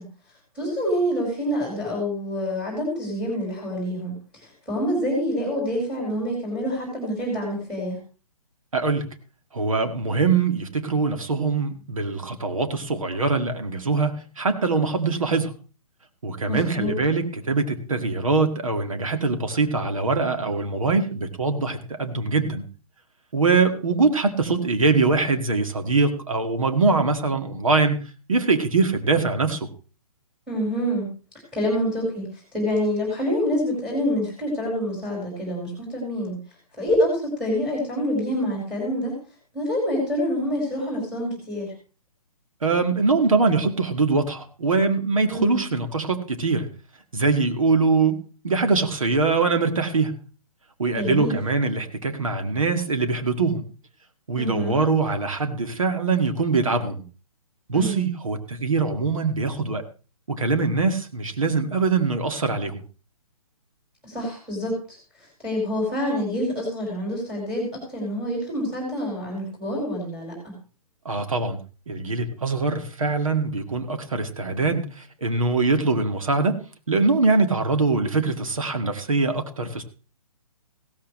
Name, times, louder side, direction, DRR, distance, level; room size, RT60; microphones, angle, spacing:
voice 1, 0.5-8.0 16.5-16.9 30.5-31.1 31.5-36.4 36.8-39.1 39.5-41.7 45.3-45.6 50.9-51.3 54.4-54.8 57.7-58.0 64.0-65.0 65.4-67.7 67.9-70.5, equal, 5° right, -2 dB, 5.1 m, -26 dB
voice 2, 8.7-9.1 9.5-15.6 16.2-22.7 23.3-28.0 28.3-29.7 42.6-46.7 47.1-50.2 50.8-53.7 54.3-57.0 57.7-59.8 60.3-62.8 71.1-71.6 71.9-76.6 76.9-79.8, right 4 dB, 60° right, 6 dB, 2.1 m, -23 dB
16.0 x 13.5 x 3.2 m, 0.36 s
figure-of-eight pair, 130°, 19 cm